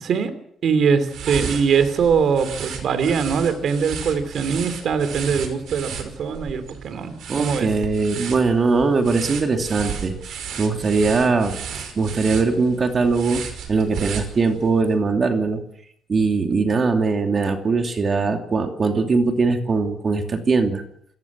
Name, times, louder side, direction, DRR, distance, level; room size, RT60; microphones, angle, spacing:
voice 1, 0.0-0.3 0.6-7.7, right 6 dB, 55° right, 10 dB, 3.0 m, -22 dB
sound 1, 1.0-14.7, right 7 dB, 70° right, 5.6 m, -34 dB
voice 2, 7.3-11.6 11.9-15.6 16.1-20.8, right 4 dB, 35° right, 5 dB, 2.6 m, -21 dB
28.0 x 15.0 x 7.4 m, 0.71 s
cardioid pair, 135°, 0 cm